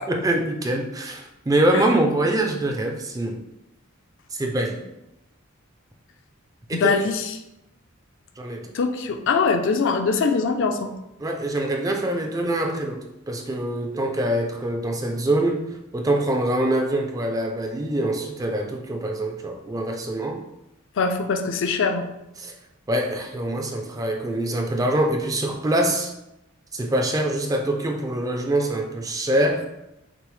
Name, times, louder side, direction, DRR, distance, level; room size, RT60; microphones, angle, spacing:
voice 1, 0.1-3.4 4.3-4.9 6.7-7.0 8.4-8.7 11.2-15.6 15.9-20.4 22.4-22.5 22.9-26.1 26.7-29.7, right 1 dB, 15° right, 3 dB, 0.4 m, -24 dB
voice 2, 6.7-7.2 8.7-10.9 21.0-22.1, left 4 dB, 60° left, 6 dB, 0.4 m, -22 dB
5.9 x 2.0 x 3.1 m, 0.90 s
head